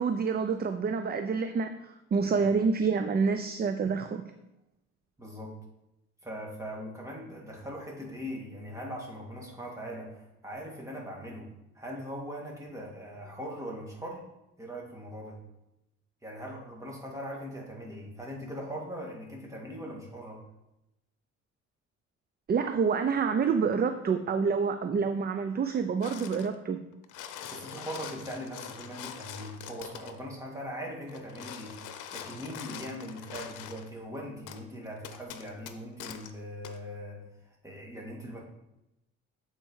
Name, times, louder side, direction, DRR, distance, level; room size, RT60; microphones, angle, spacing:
voice 1, 0.0-4.2 22.5-26.8, right 5 dB, 30° right, 8 dB, 0.5 m, -28 dB
voice 2, 5.2-5.6 6.2-14.2 14.6-15.4 16.2-20.4 27.5-31.8 32.1-38.4, equal, 10° right, -2 dB, 2.2 m, -40 dB
sound 1, 26.0-26.5 26.9-30.2 31.1-33.9 34.5-34.6 35.0-36.3 36.6-36.8, left 9 dB, 85° left, 0.7 m, -43 dB
8.0 x 4.4 x 4.7 m, 0.91 s
cardioid pair, 90°, 30 cm